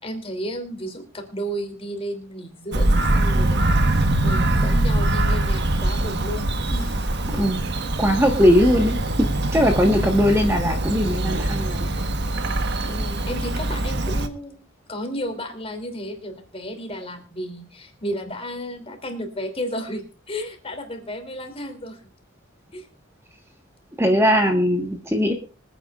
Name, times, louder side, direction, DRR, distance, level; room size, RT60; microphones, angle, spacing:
voice 1, 0.0-7.5 12.8-14.6 14.9-22.0 22.7-22.9, equal, 30° left, 5 dB, 3.0 m, -33 dB
Bird vocalization bird call bird song, 2.7-14.3, right 1 dB, 55° right, 1.3 m, -23 dB
voice 2, 8.0-9.0 9.5-11.9 24.0-25.3, equal, 15° right, 3 dB, 1.4 m, -19 dB
25.5 x 9.3 x 2.5 m, 0.36 s
head